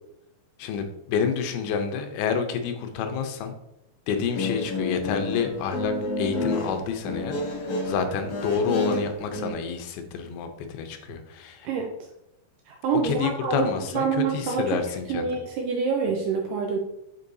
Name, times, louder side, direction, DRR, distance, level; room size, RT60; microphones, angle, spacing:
voice 1, 0.6-3.6 4.1-11.7 13.0-15.3, left 6 dB, 85° left, 7 dB, 2.7 m, -29 dB
Guitar, 4.2-9.5, left 2 dB, 60° left, 2.4 m, -30 dB
voice 2, 12.7-13.7 13.9-14.8 15.1-16.8, right 5 dB, 80° right, 1 dB, 2.0 m, -26 dB
8.2 x 4.6 x 2.6 m, 0.83 s
omnidirectional pair, 4.4 m